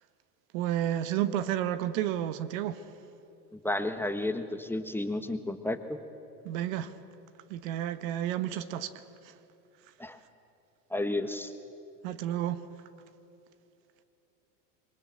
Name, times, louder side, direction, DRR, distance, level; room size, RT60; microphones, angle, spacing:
voice 1, 0.5-2.8 6.4-6.9 7.5-8.9 9.2-9.3 12.0-12.6, right 11 dB, 60° right, 12 dB, 1.3 m, -31 dB
voice 2, 3.5-6.0 10.0-10.2 10.9-11.5, left 1 dB, 5° left, 8 dB, 1.3 m, -32 dB
26.0 x 23.0 x 7.7 m, 2.7 s
hypercardioid pair, 95°, 44 cm